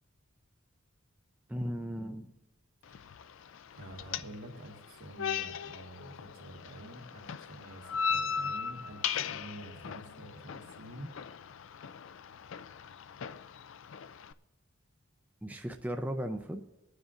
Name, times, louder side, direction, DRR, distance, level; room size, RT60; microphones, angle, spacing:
voice 1, 1.5-2.3 15.4-16.6, equal, 5° right, 4 dB, 0.5 m, -36 dB
sound 1, 2.8-14.3, left 6 dB, 60° left, 0.4 m, -38 dB
voice 2, 3.7-11.1, right 1 dB, 90° right, 0 dB, 2.2 m, -48 dB
25.0 x 9.7 x 2.6 m, 1.0 s
head